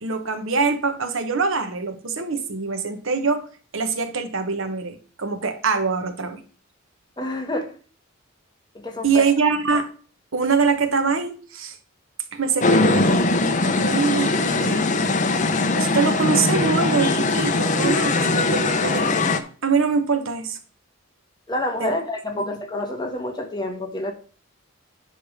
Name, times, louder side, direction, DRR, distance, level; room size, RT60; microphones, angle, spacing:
voice 1, 0.0-3.4 3.7-6.4 9.0-9.9 10.3-11.8 12.3-13.2 13.8-14.9 15.7-19.1 19.6-20.6 21.8-21.9, right 5 dB, 65° right, 1.1 m, -23 dB
voice 2, 7.2-7.7 8.7-9.3 21.5-24.1, left 1 dB, 20° left, 1.3 m, -28 dB
sound 1, 12.6-19.4, left 3 dB, 35° left, 0.7 m, -21 dB
10.0 x 3.5 x 6.4 m
head